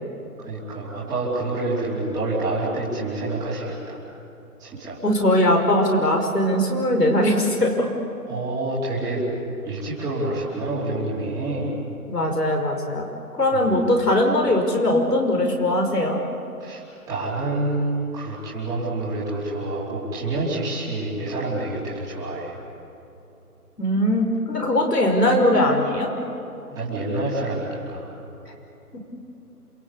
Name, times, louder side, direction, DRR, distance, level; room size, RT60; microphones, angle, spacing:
voice 1, 0.4-4.0 4.6-5.0 8.3-9.2 9.6-11.8 13.5-13.7 16.6-16.8 17.1-22.6 26.7-28.1, right 2 dB, 10° right, -9 dB, 3.3 m, -27 dB
voice 2, 5.0-7.9 12.1-13.1 13.3-16.2 23.8-26.1, left 1 dB, 90° left, 1 dB, 5.3 m, -20 dB
27.5 x 25.0 x 8.4 m, 2.9 s
figure-of-eight pair, 155°, 46 cm